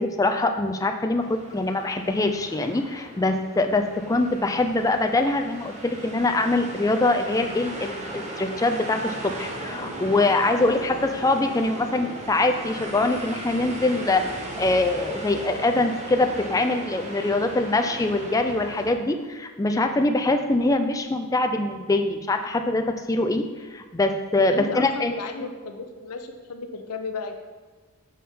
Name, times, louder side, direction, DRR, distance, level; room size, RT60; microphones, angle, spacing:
voice 1, 0.0-14.3 14.6-23.5 23.7-25.1, left 2 dB, 15° left, 5 dB, 0.4 m, -23 dB
sound 1, 1.2-18.9, right 1 dB, 30° right, 0.9 m, -37 dB
voice 2, 24.5-27.3, left 4 dB, 85° left, 6 dB, 0.7 m, -34 dB
7.3 x 4.3 x 3.7 m, 1.4 s
head